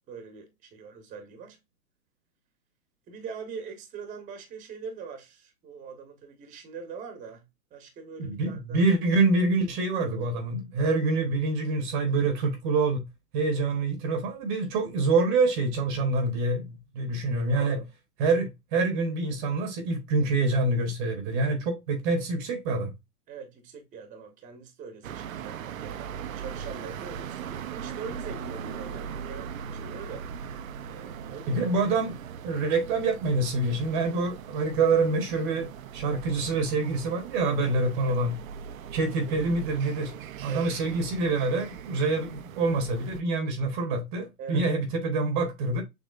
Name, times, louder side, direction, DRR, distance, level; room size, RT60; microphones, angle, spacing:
voice 1, 0.1-1.6 3.1-7.4 7.7-8.8 17.5-17.9 18.2-18.4 23.3-30.3 30.8-31.7 39.3-39.4 40.5-40.7 44.4-44.7, right 5 dB, 15° right, 1.1 m, -42 dB
voice 2, 8.3-13.0 13.3-17.8 18.2-22.9 31.5-38.3 38.9-40.1 40.4-45.8, right 3 dB, 30° right, 1.1 m, -26 dB
sound 1, 25.0-43.2, right 8 dB, 60° right, 0.7 m, -40 dB
6.6 x 3.1 x 2.4 m
hypercardioid pair, 130°, 46 cm